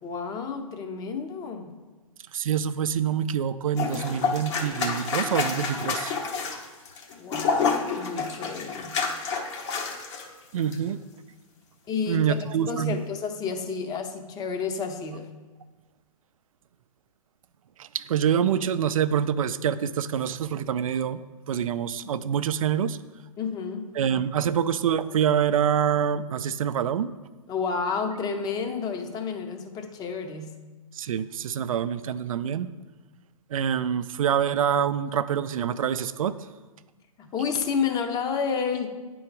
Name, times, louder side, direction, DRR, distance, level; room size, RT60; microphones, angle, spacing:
voice 1, 0.0-1.7 7.2-9.0 11.9-15.3 23.4-24.0 27.5-30.5 37.2-38.9, left 5 dB, 20° left, 6 dB, 0.7 m, -30 dB
voice 2, 2.3-6.1 10.5-11.0 12.1-13.0 17.8-23.0 23.9-27.1 30.9-32.7 33.5-36.3, right 8 dB, 70° right, 14 dB, 0.4 m, -26 dB
sound 1, 3.8-10.3 10.6-10.8, left 5 dB, 55° left, 1.2 m, -29 dB
9.4 x 3.9 x 4.6 m, 1.2 s
hypercardioid pair, 120°, 18 cm